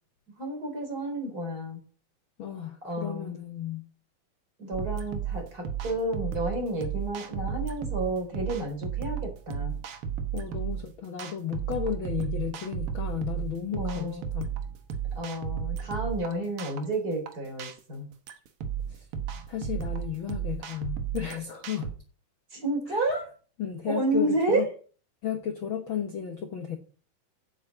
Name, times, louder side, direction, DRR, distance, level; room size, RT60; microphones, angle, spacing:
voice 1, 0.4-1.8 2.8-3.3 4.6-9.8 13.8-14.2 15.2-18.1 22.5-23.3 23.8-24.6, right 2 dB, 25° right, 2 dB, 3.8 m, -30 dB
voice 2, 2.4-3.9 10.3-14.5 18.9-19.0 19.5-21.9 22.9-23.0 23.6-24.7 25.2-26.8, left 9 dB, 70° left, 5 dB, 1.2 m, -33 dB
sound 1, 4.7-21.9, right 8 dB, 65° right, 1.4 m, -34 dB
8.3 x 7.4 x 8.1 m, 0.40 s
omnidirectional pair, 4.0 m